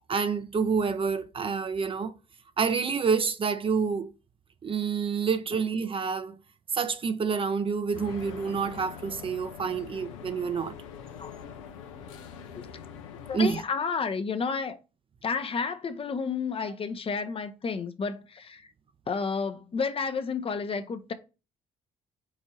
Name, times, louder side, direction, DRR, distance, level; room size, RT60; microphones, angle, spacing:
voice 1, 0.1-2.2 2.6-4.1 4.6-6.4 6.7-10.8 13.3-13.6, right 5 dB, 35° right, 0.5 m, -28 dB
Train Station Atmosphere, 7.9-13.6, left 7 dB, 80° left, 0.5 m, -44 dB
voice 2, 13.3-14.8 15.2-18.7 19.1-21.1, left 5 dB, 35° left, 0.6 m, -31 dB
4.9 x 2.6 x 4.0 m
hypercardioid pair, 50°, 16 cm